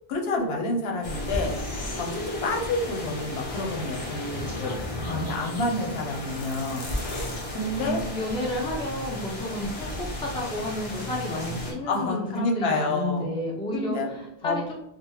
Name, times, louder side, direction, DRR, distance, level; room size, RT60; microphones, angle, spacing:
voice 1, 0.1-1.5 2.0-4.8 5.1-6.9 7.5-8.0 11.9-13.3 13.7-14.1 14.4-14.6, left 2 dB, 75° left, 1 dB, 0.9 m, -28 dB
sound 1, 1.0-11.7, left 1 dB, 40° left, 0.7 m, -34 dB
voice 2, 7.8-14.6, left 1 dB, 10° left, -2 dB, 0.4 m, -31 dB
3.4 x 2.1 x 3.0 m, 0.88 s
omnidirectional pair, 1.0 m